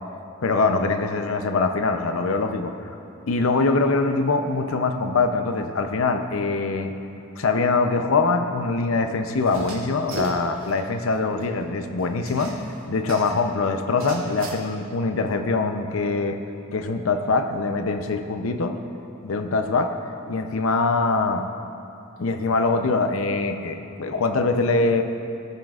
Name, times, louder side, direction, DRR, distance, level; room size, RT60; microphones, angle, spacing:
voice 1, 0.4-2.7 3.3-6.9 7.4-12.5 12.9-16.4 16.7-18.8 19.2-20.0 20.3-21.5 22.2-25.1, left 3 dB, 90° left, 7 dB, 0.6 m, -23 dB
sound 1, 9.4-10.8 11.1-11.2 11.4-11.5 12.3-13.5 14.0-14.5, right 1 dB, 80° right, 2.2 m, -36 dB
19.5 x 7.5 x 2.4 m, 2.9 s
head